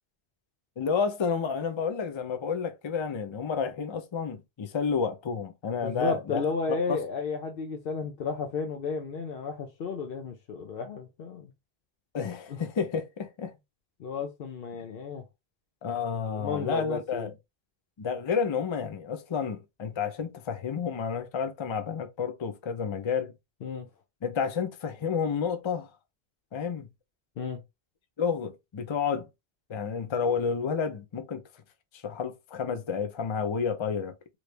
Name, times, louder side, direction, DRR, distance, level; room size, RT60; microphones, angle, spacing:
voice 1, 0.8-6.4 6.9-7.0 12.1-13.5 15.8-17.3 18.0-23.3 24.2-25.9 26.5-26.9 28.2-29.3 29.7-31.4 31.9-34.2, left 6 dB, 35° left, 0.5 m, -30 dB
voice 2, 5.8-11.5 14.0-15.2 16.3-17.3 23.6-23.9 27.4-27.6, left 4 dB, 65° left, 0.8 m, -33 dB
3.1 x 2.6 x 3.2 m
omnidirectional pair, 1.1 m